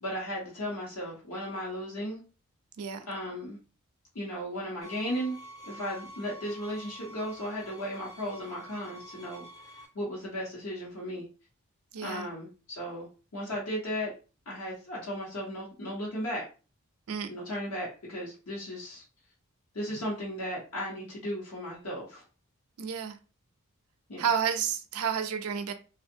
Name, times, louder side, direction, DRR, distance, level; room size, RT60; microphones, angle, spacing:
voice 1, 0.0-2.2 3.1-3.6 4.1-5.4 5.6-9.4 9.9-11.2 12.0-13.1 13.3-14.1 14.5-16.5 17.3-19.0 19.7-22.2 24.1-24.3, equal, 75° left, 0.9 m, -35 dB
sound 1, 4.8-9.9, right 1 dB, 20° left, 0.5 m, -48 dB
voice 2, 11.9-12.3 17.1-17.3 22.8-23.2 24.2-25.7, right 7 dB, 80° right, 0.4 m, -30 dB
2.6 x 2.3 x 2.7 m
head